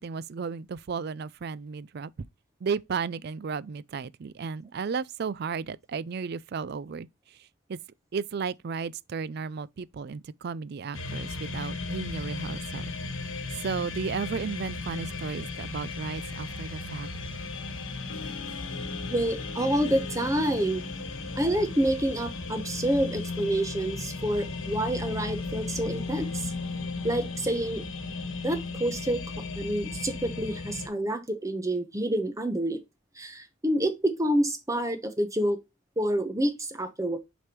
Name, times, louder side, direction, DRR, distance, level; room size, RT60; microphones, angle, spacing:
voice 1, 0.0-2.3 2.6-7.4 7.7-7.8 8.1-12.9 13.5-17.1, right 5 dB, 50° right, 0.4 m, -34 dB
sound 1, 10.9-30.9, left 3 dB, 65° left, 1.3 m, -36 dB
Harp, 18.1-23.3, left 4 dB, 80° left, 1.0 m, -47 dB
voice 2, 19.1-20.8 21.4-26.5 27.0-27.8 28.4-29.2 29.6-32.8 33.2-35.6 36.0-37.2, right 1 dB, 15° right, 0.8 m, -28 dB
6.5 x 5.1 x 2.9 m
head